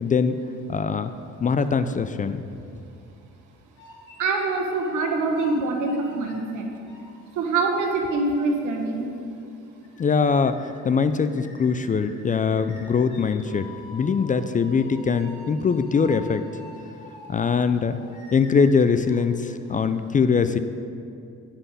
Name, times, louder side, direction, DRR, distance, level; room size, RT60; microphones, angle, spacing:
voice 1, 0.0-0.4 0.7-1.1 1.4-2.4 10.0-13.6 13.9-16.4 17.3-18.0 18.3-20.6, left 5 dB, 25° left, 10 dB, 0.3 m, -22 dB
sound 1, 1.7-3.3 3.8-5.0 5.3-7.1 7.6-7.7 8.7-8.8 9.1-9.2 9.5-9.6 9.8-10.0 10.3-10.8 11.2-19.9, left 2 dB, 90° left, 2.4 m, -46 dB
voice 2, 4.2-6.7 7.3-9.1, right 3 dB, 80° right, 3 dB, 1.3 m, -24 dB
9.9 x 5.7 x 5.4 m, 2.5 s
cardioid pair, 90°, 30 cm